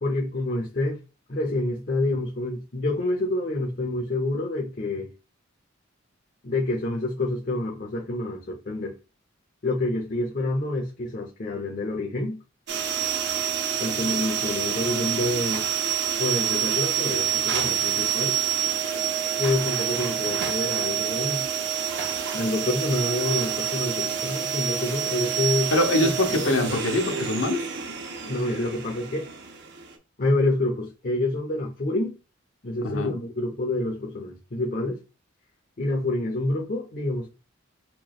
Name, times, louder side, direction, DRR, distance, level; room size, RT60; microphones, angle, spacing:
voice 1, 0.0-1.0 1.3-5.1 6.4-8.9 9.6-12.4 13.8-15.7 16.2-18.4 19.4-21.5 22.3-25.7 26.0-26.1 26.4-26.7 28.2-29.3 30.2-32.2 32.6-35.0 35.8-37.3, left 2 dB, 45° left, 0.8 m, -27 dB
sound 1, 12.7-29.9, right 9 dB, 55° right, 0.7 m, -27 dB
voice 2, 25.7-27.6 32.8-33.2, left 1 dB, 75° left, 0.9 m, -23 dB
4.6 x 3.1 x 2.4 m
head